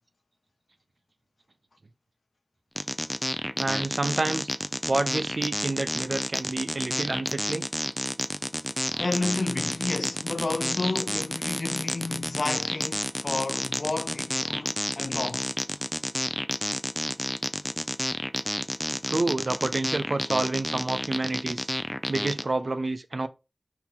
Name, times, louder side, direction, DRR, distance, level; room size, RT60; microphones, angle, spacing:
sound 1, 2.8-22.4, equal, 10° left, 0.6 m, -30 dB
voice 1, 3.6-4.5 4.9-7.7 19.1-21.7 22.1-23.3, right 2 dB, 75° right, 0.6 m, -28 dB
voice 2, 8.9-15.5, left 3 dB, 75° left, 0.5 m, -31 dB
5.8 x 4.5 x 3.7 m
wide cardioid pair, 40°, 0 cm